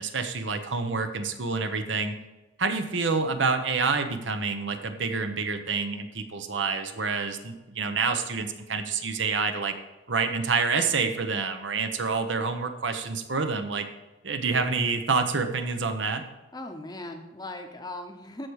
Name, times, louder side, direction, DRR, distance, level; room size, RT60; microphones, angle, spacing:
voice 1, 0.0-2.1 2.6-9.7 10.1-13.9 14.2-16.2, right 4 dB, 70° right, 7 dB, 0.9 m, -27 dB
voice 2, 16.5-18.5, left 2 dB, 20° left, 5 dB, 0.8 m, -39 dB
13.5 x 4.9 x 4.7 m, 1.1 s
head